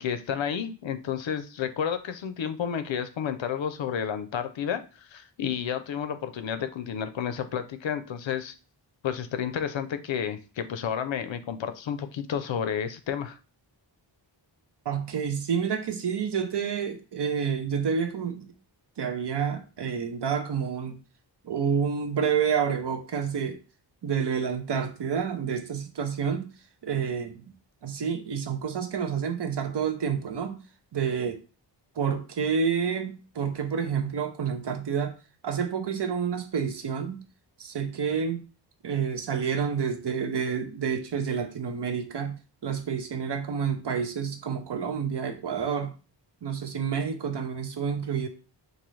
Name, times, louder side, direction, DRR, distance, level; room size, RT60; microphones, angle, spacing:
voice 1, 0.0-8.5 9.0-13.4, left 8 dB, 80° left, 10 dB, 0.5 m, -31 dB
voice 2, 14.9-18.5 19.0-21.0 21.4-23.6 24.0-26.5 26.8-27.4 27.8-30.6 30.9-31.4 32.0-35.1 35.4-37.2 37.6-38.4 38.8-46.0 46.4-48.3, right 7 dB, 65° right, 7 dB, 0.7 m, -29 dB
3.8 x 2.6 x 3.1 m, 0.35 s
wide cardioid pair, 75°, 45 cm